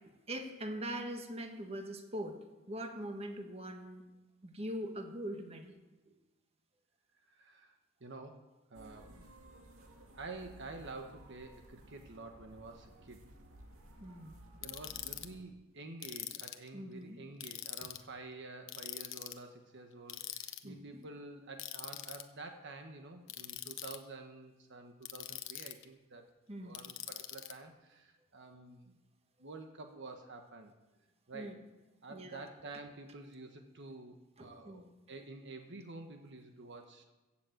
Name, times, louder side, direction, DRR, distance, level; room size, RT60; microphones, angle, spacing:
voice 1, 0.3-2.4 2.7-4.0 4.4-5.8 6.1-6.2 14.0-14.4 16.7-17.2 17.8-17.9 20.6-20.8 26.5-26.8 31.3-31.5 32.1-32.4 34.4-34.9, right 1 dB, 30° right, 4 dB, 1.5 m, -42 dB
voice 2, 7.3-9.3 10.1-13.2 14.6-26.2 26.6-29.0 29.4-30.7 31.3-31.7 32.0-37.0, right 3 dB, 60° right, 5 dB, 1.3 m, -49 dB
sound 1, 8.7-15.4, right 1 dB, 85° right, 2.1 m, -56 dB
Ratchet pawl, 14.6-15.3 16.0-16.7 17.4-18.0 18.7-19.4 20.1-20.6 21.6-22.2 23.3-24.0 25.0-25.8 26.7-27.5, left 13 dB, 65° left, 0.9 m, -43 dB
16.0 x 7.2 x 7.9 m, 1.1 s
head